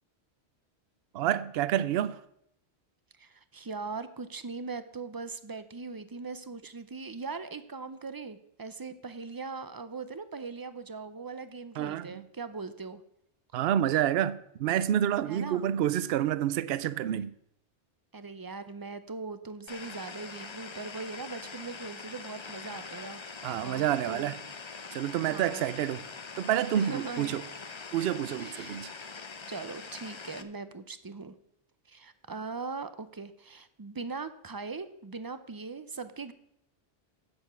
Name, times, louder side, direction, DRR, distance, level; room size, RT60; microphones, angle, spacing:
voice 1, 1.1-2.2 11.8-12.2 13.5-17.3 23.4-24.4 24.9-26.0 26.4-27.4 27.9-28.9, right 11 dB, 70° right, 0.8 m, -28 dB
voice 2, 3.2-13.0 15.3-15.7 18.1-23.2 23.5-24.3 25.3-25.6 26.8-27.3 28.3-28.8 29.5-31.3 31.9-36.3, right 4 dB, 35° right, 0.4 m, -40 dB
sound 1, 19.7-30.4, left 4 dB, 35° left, 0.5 m, -43 dB
8.0 x 6.9 x 8.0 m
omnidirectional pair, 1.1 m